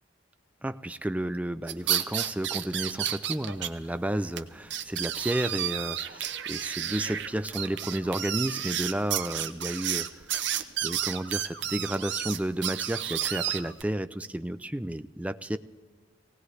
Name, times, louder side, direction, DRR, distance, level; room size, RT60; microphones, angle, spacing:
voice 1, 0.6-10.2 10.8-15.6, right 1 dB, 5° right, 12 dB, 0.3 m, -32 dB
sound 1, 1.7-3.7 4.0-4.1 4.4-4.5 4.7-13.8, right 10 dB, 65° right, 0.8 m, -31 dB
18.0 x 18.0 x 3.2 m, 1.4 s
head